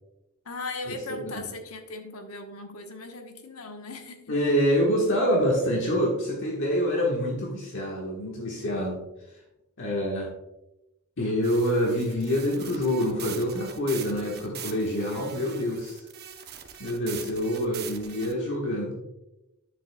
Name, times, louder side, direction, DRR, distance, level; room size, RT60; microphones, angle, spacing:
voice 1, 0.4-4.4, left 3 dB, 90° left, 5 dB, 1.1 m, -38 dB
voice 2, 4.3-9.0 9.8-10.3 11.2-16.1 16.8-18.9, equal, 60° left, -2 dB, 1.4 m, -26 dB
sound 1, 11.4-18.3, right 8 dB, 50° right, 0.8 m, -42 dB
9.8 x 7.7 x 2.3 m, 0.93 s
head